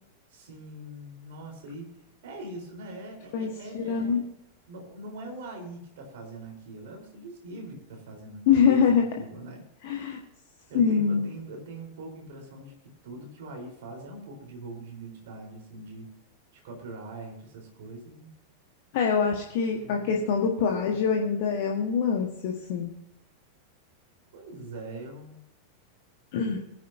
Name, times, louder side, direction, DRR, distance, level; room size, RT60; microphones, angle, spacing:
voice 1, 0.3-2.0 2.2-4.3 4.7-9.7 10.7-12.7 13.0-16.1 16.6-18.3 19.8-20.3 24.3-25.4, right 2 dB, 55° right, 2 dB, 4.2 m, -42 dB
voice 2, 3.3-4.2 8.5-9.0 9.8-10.2 10.7-11.3 18.9-22.9 26.3-26.6, left 6 dB, 50° left, 1 dB, 1.5 m, -24 dB
21.0 x 10.0 x 2.8 m, 0.80 s
figure-of-eight pair, 90°, 0 cm